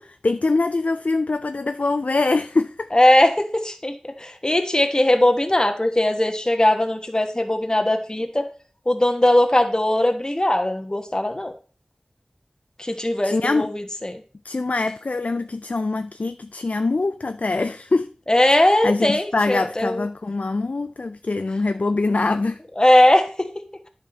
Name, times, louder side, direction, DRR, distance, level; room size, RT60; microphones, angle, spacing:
voice 1, 0.0-2.9 13.2-13.7 14.4-18.1 18.5-22.6, left 3 dB, 70° left, 0.4 m, -24 dB
voice 2, 2.9-8.5 8.9-11.5 12.8-14.2 18.3-20.0 22.8-23.5, left 1 dB, 30° left, 1.3 m, -19 dB
10.5 x 5.8 x 4.4 m
wide cardioid pair, 55°, 3 cm